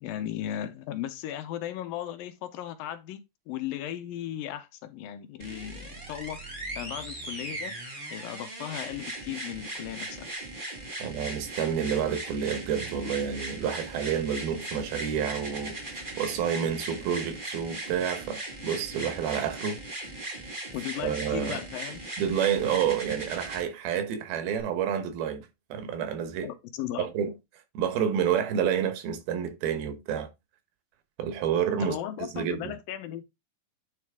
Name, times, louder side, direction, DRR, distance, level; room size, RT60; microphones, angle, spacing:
voice 1, 0.0-7.7 8.1-10.3 16.3-16.4 20.7-22.0 26.4-27.1 31.8-33.2, left 12 dB, 80° left, 2.4 m, -36 dB
sound 1, 5.4-23.6 24.6-24.7, right 2 dB, 40° right, 0.7 m, -38 dB
voice 2, 11.0-19.8 21.0-21.6 22.2-26.5 27.0-27.3 27.7-30.3 31.2-32.8, right 8 dB, 90° right, 3.1 m, -29 dB
9.4 x 4.2 x 3.5 m
omnidirectional pair, 4.2 m